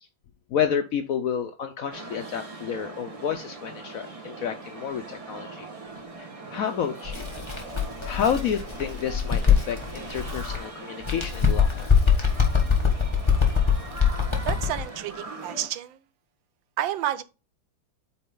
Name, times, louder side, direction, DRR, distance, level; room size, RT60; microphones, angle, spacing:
voice 1, 0.5-5.7 6.2-7.3 8.0-11.9, left 8 dB, 75° left, 0.7 m, -30 dB
sound 1, 1.9-15.7, right 3 dB, 20° right, 1.2 m, -41 dB
Bird, 7.0-10.6 11.0-14.8, left 6 dB, 15° left, 1.1 m, -23 dB
voice 2, 14.4-16.0 16.8-17.2, right 12 dB, 75° right, 1.3 m, -30 dB
8.5 x 4.2 x 3.8 m
omnidirectional pair, 2.2 m